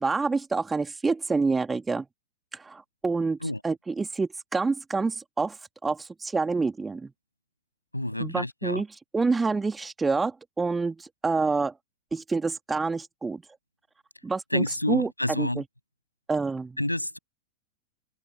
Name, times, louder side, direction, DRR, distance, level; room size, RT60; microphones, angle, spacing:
voice 1, 0.0-2.1 2.5-3.4 3.6-5.6 5.8-7.1 8.2-8.9 9.1-11.7 12.1-13.4 14.2-15.6 16.3-16.8, right 4 dB, 10° right, 2.7 m, -27 dB
voice 2, 7.9-8.8 14.5-15.6 16.8-17.2, left 1 dB, 85° left, 7.0 m, -28 dB
figure-of-eight pair, 90°, 0 cm